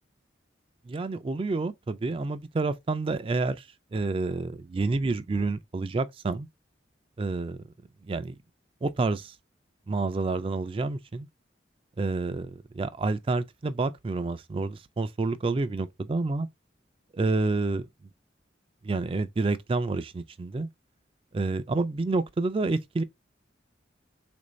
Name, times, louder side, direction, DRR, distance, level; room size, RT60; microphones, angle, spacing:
voice 1, 0.9-6.5 7.2-7.7 8.0-8.4 8.8-9.4 9.9-11.3 12.0-16.5 17.1-17.9 18.8-20.7 21.3-23.0, right 3 dB, 30° right, 0.3 m, -29 dB
3.7 x 2.6 x 3.0 m
head